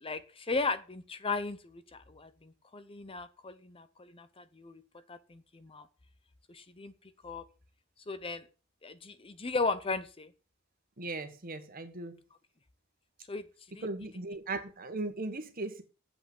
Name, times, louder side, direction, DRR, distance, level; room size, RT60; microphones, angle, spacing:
voice 1, 0.0-4.8 5.1-5.9 6.5-6.9 7.2-7.4 8.1-8.4 8.8-10.3 13.3-13.5 13.7-13.9, left 3 dB, 25° left, 0.7 m, -36 dB
voice 2, 11.0-12.2 13.8-15.8, right 2 dB, 45° right, 1.5 m, -38 dB
8.0 x 5.8 x 7.8 m
head